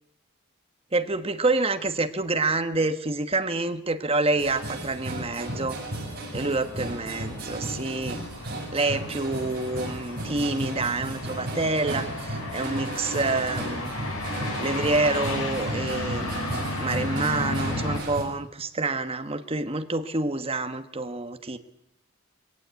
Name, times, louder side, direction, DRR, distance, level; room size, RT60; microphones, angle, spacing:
voice 1, 0.9-5.8 6.3-8.2 8.7-13.9 14.6-16.5 16.8-21.6, right 2 dB, 25° right, 8 dB, 1.2 m, -27 dB
sound 1, 4.3-18.2, right 1 dB, 45° right, 7.7 m, -35 dB
sound 2, 4.9-18.0, left 2 dB, 75° left, 7.6 m, -35 dB
22.0 x 17.5 x 8.2 m, 0.80 s
head